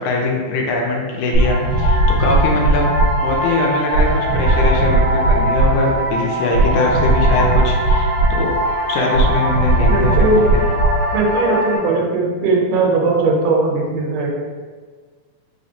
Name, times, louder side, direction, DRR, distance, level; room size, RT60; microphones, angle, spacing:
voice 1, 0.0-4.1 4.3-8.5 8.9-10.6, left 2 dB, 80° left, 0 dB, 2.0 m, -22 dB
sound 1, 1.3-11.8, right 1 dB, 70° right, 1.4 m, -17 dB
voice 2, 9.9-10.4 11.1-14.3, right 3 dB, 85° right, 0 dB, 2.2 m, -18 dB
4.9 x 3.0 x 2.7 m, 1.5 s
omnidirectional pair, 3.5 m